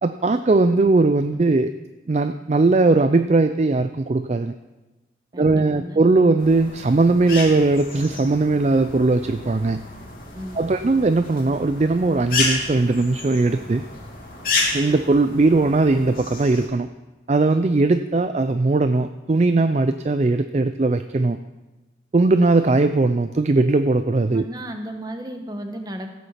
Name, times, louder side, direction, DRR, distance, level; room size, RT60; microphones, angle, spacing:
voice 1, 0.0-1.7 2.1-4.5 5.3-9.8 10.6-13.8 14.7-16.9 17.3-21.4 22.1-24.4, right 3 dB, 40° right, 10 dB, 0.4 m, -19 dB
voice 2, 5.3-6.0 10.3-10.6 24.3-26.1, right 1 dB, 20° right, 5 dB, 1.2 m, -34 dB
sound 1, 6.4-16.7, left 3 dB, 50° left, 2.6 m, -31 dB
15.5 x 8.4 x 5.7 m, 1.1 s
head